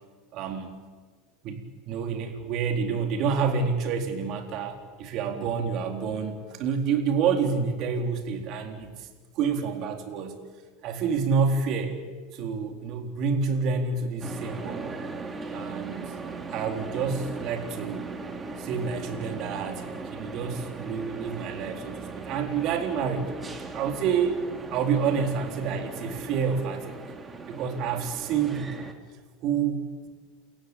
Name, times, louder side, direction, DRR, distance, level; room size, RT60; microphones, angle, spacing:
voice 1, 0.3-0.8 1.4-9.1 9.3-10.4 10.8-12.0 12.3-14.9 15.5-16.1 16.5-18.1 18.6-23.3 23.7-24.4 24.7-27.0 27.5-28.9 29.4-30.1, right 6 dB, 55° right, 4 dB, 4.0 m, -28 dB
sound 1, 14.2-28.9, right 3 dB, 25° right, 3.1 m, -38 dB
29.5 x 15.5 x 8.9 m, 1.5 s
hypercardioid pair, 85°, 0 cm